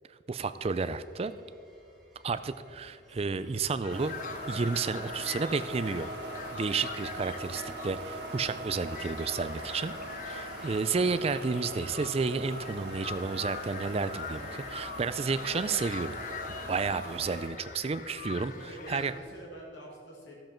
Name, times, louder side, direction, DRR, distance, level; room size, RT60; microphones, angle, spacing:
voice 1, 0.3-1.3 2.2-6.1 6.5-9.9 10.3-16.2 16.5-18.5 18.9-19.1, right 4 dB, 35° right, 13 dB, 0.4 m, -31 dB
sound 1, 0.6-19.4, equal, ahead, 1.7 m, -58 dB
sound 2, 3.8-19.2, left 7 dB, 45° left, 0.4 m, -44 dB
sound 3, 3.9-17.5, right 1 dB, 70° right, 1.8 m, -41 dB
voice 2, 18.2-20.3, right 1 dB, 85° left, -3 dB, 2.3 m, -47 dB
13.0 x 7.7 x 4.4 m, 2.3 s
head